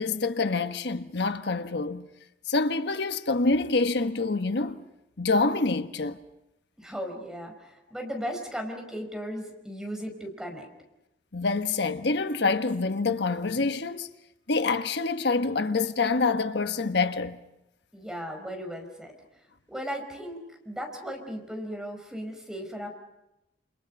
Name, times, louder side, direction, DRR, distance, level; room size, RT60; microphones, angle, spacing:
voice 1, 0.0-2.1 2.5-4.8 5.2-6.2 11.3-14.1 14.5-17.4, left 3 dB, 70° left, 1.3 m, -26 dB
voice 2, 6.8-10.7 17.9-19.2 19.7-20.4 20.6-22.9, equal, 5° right, 5.2 m, -36 dB
29.5 x 29.0 x 5.4 m
head